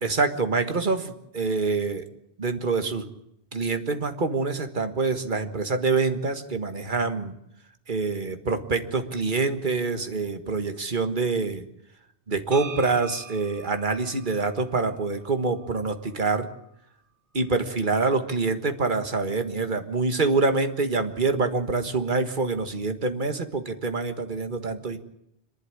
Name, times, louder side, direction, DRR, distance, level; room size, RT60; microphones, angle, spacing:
voice 1, 0.0-2.0 2.4-3.1 3.5-7.3 7.9-11.7 12.3-16.5 17.3-25.0, right 4 dB, 45° right, 8 dB, 1.8 m, -26 dB
sound 1, 12.5-16.6, right 6 dB, 85° right, 2.1 m, -44 dB
26.0 x 11.5 x 9.8 m, 0.79 s
omnidirectional pair, 1.1 m